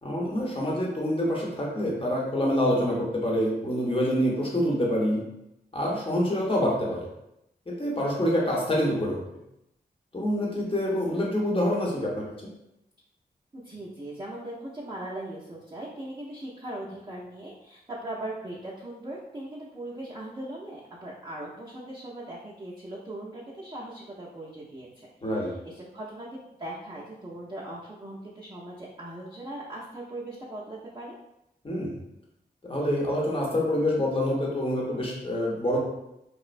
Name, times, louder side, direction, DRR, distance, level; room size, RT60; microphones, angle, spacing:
voice 1, 0.0-5.2 5.7-7.1 7.7-9.2 10.1-12.3 25.2-25.5 31.6-32.0 32.7-35.8, equal, 30° left, -3 dB, 0.9 m, -26 dB
voice 2, 13.5-31.1, right 1 dB, 25° right, -7 dB, 0.6 m, -39 dB
3.0 x 2.0 x 2.5 m, 0.86 s
cardioid pair, 50°, 17 cm